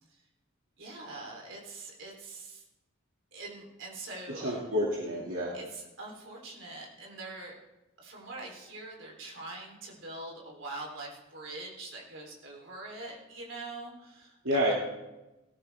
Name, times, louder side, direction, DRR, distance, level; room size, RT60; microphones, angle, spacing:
voice 1, 0.8-2.6 3.3-4.7 5.5-7.5 8.0-14.4 14.7-14.8, right 2 dB, 65° right, -1 dB, 3.5 m, -43 dB
voice 2, 4.3-5.6 14.4-14.7, equal, 80° right, -4 dB, 2.3 m, -29 dB
18.0 x 13.0 x 3.5 m, 1.0 s
head